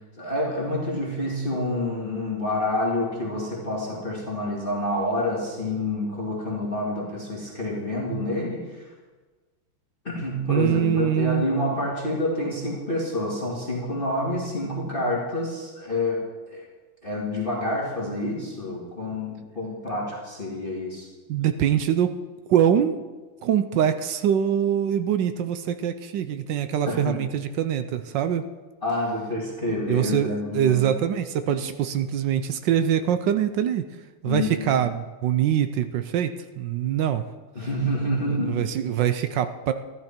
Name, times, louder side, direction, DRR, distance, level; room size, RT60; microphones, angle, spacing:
voice 1, 0.2-8.9 10.0-16.2 16.5-16.7 17.0-21.1 26.9-27.2 28.8-30.9 31.5-31.6 34.2-34.8 37.5-38.6, left 1 dB, 25° left, -4 dB, 2.2 m, -28 dB
voice 2, 10.5-11.5 21.3-22.2 22.5-23.0 23.4-28.4 29.9-33.9 34.2-37.2 38.4-39.7, right 9 dB, 70° right, 10 dB, 1.2 m, -23 dB
13.5 x 12.0 x 4.4 m, 1.3 s
omnidirectional pair, 2.4 m